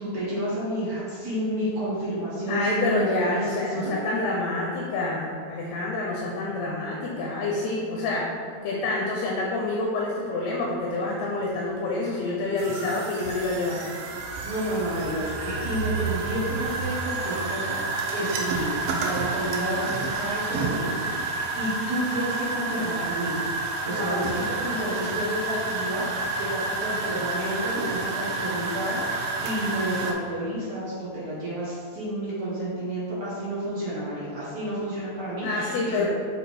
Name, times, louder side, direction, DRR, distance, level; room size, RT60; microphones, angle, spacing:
voice 1, 0.0-3.5 3.7-3.9 14.4-17.8 18.1-23.3 23.8-36.1, right 1 dB, 40° right, -8 dB, 1.8 m, -30 dB
voice 2, 2.5-8.3 8.6-13.8 23.9-24.3 35.4-36.1, left 2 dB, 75° left, -2 dB, 1.9 m, -27 dB
sound 1, 12.6-30.1, right 3 dB, 80° right, 1.6 m, -30 dB
5.5 x 4.2 x 4.2 m, 2.1 s
omnidirectional pair, 3.3 m